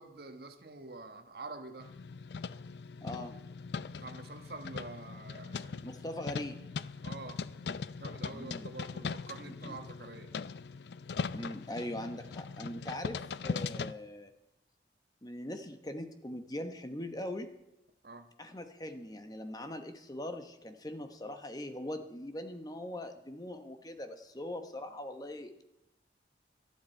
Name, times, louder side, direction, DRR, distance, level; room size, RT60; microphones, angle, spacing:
voice 1, 0.0-1.9 4.0-5.9 7.0-7.4 8.0-10.3 18.0-18.3, right 3 dB, 60° right, 7 dB, 1.4 m, -47 dB
sound 1, 1.8-13.9, left 5 dB, 70° left, 0.5 m, -40 dB
voice 2, 3.0-3.4 5.8-6.7 8.3-8.7 9.4-9.8 11.3-14.3 15.2-17.5 18.4-25.6, left 1 dB, 20° left, 8 dB, 1.0 m, -41 dB
19.0 x 13.0 x 4.5 m, 0.89 s
head